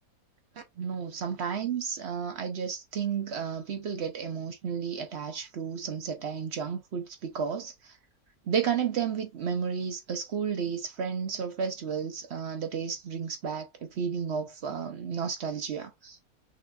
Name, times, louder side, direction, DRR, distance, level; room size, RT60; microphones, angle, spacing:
voice 1, 0.8-8.0 8.5-16.2, right 7 dB, 55° right, 0.8 m, -32 dB
6.1 x 2.6 x 2.3 m
omnidirectional pair, 1.6 m